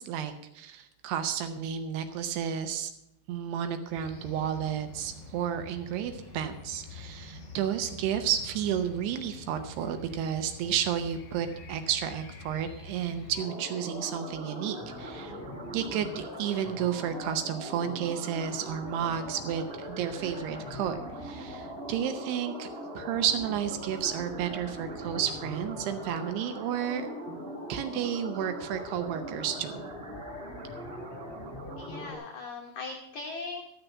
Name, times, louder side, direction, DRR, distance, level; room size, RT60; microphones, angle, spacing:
voice 1, 0.0-2.9 3.3-15.3 15.7-22.7 23.0-27.1 27.7-29.8, right 9 dB, 75° right, 8 dB, 2.7 m, -32 dB
sound 1, 3.9-13.4, left 3 dB, 25° left, 1.9 m, -46 dB
sound 2, 13.3-32.1, equal, 15° right, 2.7 m, -40 dB
voice 2, 31.8-33.6, left 3 dB, 85° left, 2 dB, 1.6 m, -39 dB
13.0 x 6.8 x 7.2 m, 0.79 s
omnidirectional pair, 5.0 m